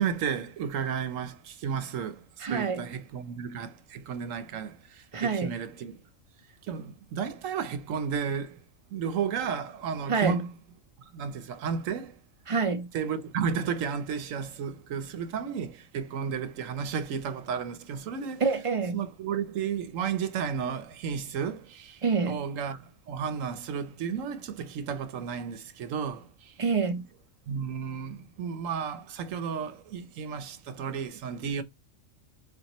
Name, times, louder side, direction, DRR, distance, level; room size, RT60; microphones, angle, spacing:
voice 1, 0.0-6.0 6.6-8.6 8.9-10.5 11.1-12.2 12.9-18.4 18.9-26.6 26.9-27.0 27.5-31.6, right 7 dB, 80° right, 1.1 m, -33 dB
voice 2, 2.4-2.8 5.1-5.5 10.1-10.4 12.5-12.9 18.4-19.0 22.0-22.4 26.6-27.1, right 5 dB, 40° right, 0.5 m, -27 dB
6.7 x 2.5 x 3.0 m
omnidirectional pair, 1.3 m